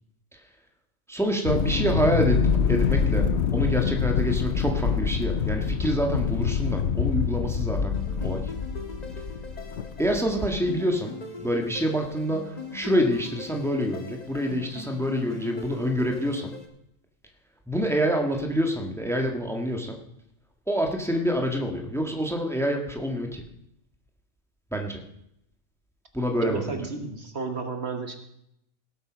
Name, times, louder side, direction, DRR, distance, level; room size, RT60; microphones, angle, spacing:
voice 1, 1.1-8.5 10.0-16.5 17.7-20.0 20.7-23.4 24.7-25.0 26.1-26.8, equal, ahead, 3 dB, 1.6 m, -27 dB
sound 1, 1.4-10.5, left 6 dB, 55° left, 1.0 m, -26 dB
sound 2, 7.9-16.7, left 4 dB, 30° left, 1.6 m, -41 dB
voice 2, 26.4-28.2, right 4 dB, 50° right, 6 dB, 1.5 m, -32 dB
17.5 x 8.2 x 6.2 m, 0.77 s
omnidirectional pair, 1.4 m